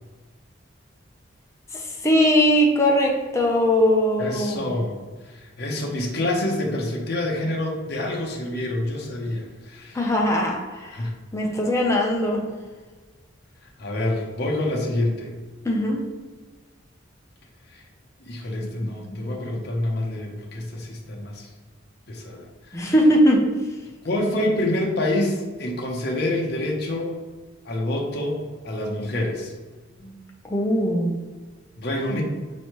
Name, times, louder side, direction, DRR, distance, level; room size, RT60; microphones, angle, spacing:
voice 1, 1.7-4.7 9.9-12.4 15.6-16.0 18.8-19.2 22.7-23.5 30.0-30.2 30.4-31.1 32.1-32.2, equal, 15° left, -1 dB, 0.6 m, -21 dB
voice 2, 4.2-5.0 5.4-10.0 10.9-11.1 13.8-15.3 17.7-17.8 18.2-21.5 22.1-22.4 22.8-22.9 24.0-27.1 27.6-29.5 31.8-32.2, left 1 dB, 55° left, -1 dB, 0.8 m, -27 dB
5.4 x 3.1 x 3.0 m, 1.3 s
head